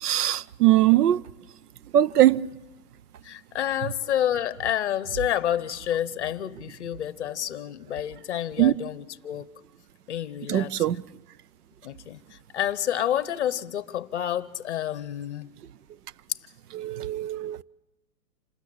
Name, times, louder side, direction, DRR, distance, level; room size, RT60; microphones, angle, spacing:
voice 1, 0.0-1.2 1.9-2.5 8.6-8.7 10.5-11.0 16.7-17.6, right 13 dB, 65° right, 0.6 m, -21 dB
voice 2, 3.2-9.5 10.1-10.9 11.8-12.2 12.5-15.5, left 11 dB, 45° left, 0.8 m, -29 dB
27.0 x 13.0 x 8.7 m
hypercardioid pair, 180°, 49 cm